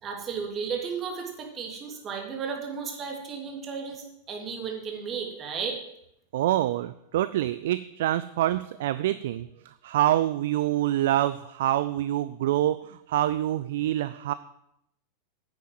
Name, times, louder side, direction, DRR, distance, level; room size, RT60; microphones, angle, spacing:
voice 1, 0.0-5.8, right 6 dB, 25° right, 1 dB, 2.9 m, -34 dB
voice 2, 6.3-14.3, right 13 dB, 55° right, 14 dB, 0.4 m, -26 dB
9.4 x 9.0 x 7.8 m, 0.78 s
figure-of-eight pair, 90°, 0 cm